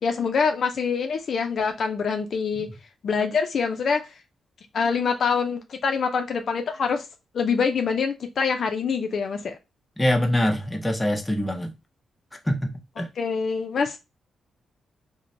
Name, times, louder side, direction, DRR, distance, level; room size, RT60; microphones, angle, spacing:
voice 1, 0.0-2.7 3.0-4.1 4.7-7.1 7.3-9.6 13.2-14.0, left 5 dB, 60° left, 0.4 m, -25 dB
voice 2, 10.0-11.7 12.5-13.1, left 1 dB, 10° left, 0.6 m, -24 dB
3.0 x 2.0 x 2.5 m
cardioid pair, 105°, 0 cm